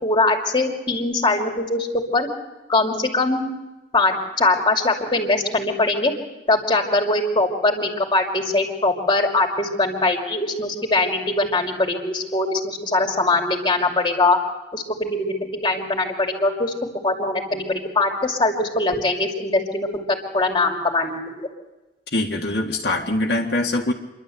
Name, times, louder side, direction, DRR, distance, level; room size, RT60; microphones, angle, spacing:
voice 1, 0.0-2.3 2.7-3.4 3.9-6.1 6.5-14.4 14.7-16.7 17.0-19.9 20.3-21.5, left 2 dB, 25° left, 2 dB, 2.6 m, -21 dB
voice 2, 22.1-23.9, left 2 dB, 65° left, -1 dB, 1.8 m, -23 dB
28.0 x 12.0 x 7.8 m, 1.1 s
head